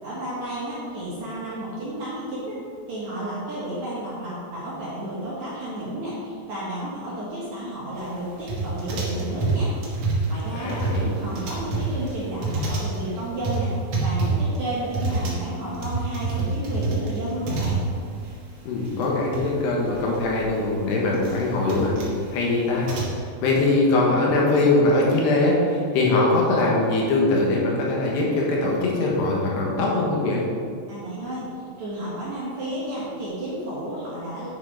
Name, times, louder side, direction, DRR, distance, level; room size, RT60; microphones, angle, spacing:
voice 1, 0.0-2.6 2.9-9.7 10.3-13.7 14.0-17.9 30.9-31.5 31.8-34.5, right 1 dB, 50° right, -8 dB, 2.5 m, -32 dB
sound 1, 8.5-18.3 18.5-18.6 18.8-19.4 19.8-23.2, right 3 dB, 75° right, 1.3 m, -27 dB
voice 2, 10.5-11.1 18.6-21.9 22.3-30.5, left 2 dB, 75° left, -3 dB, 3.3 m, -22 dB
8.9 x 6.5 x 4.9 m, 2.2 s
omnidirectional pair, 5.1 m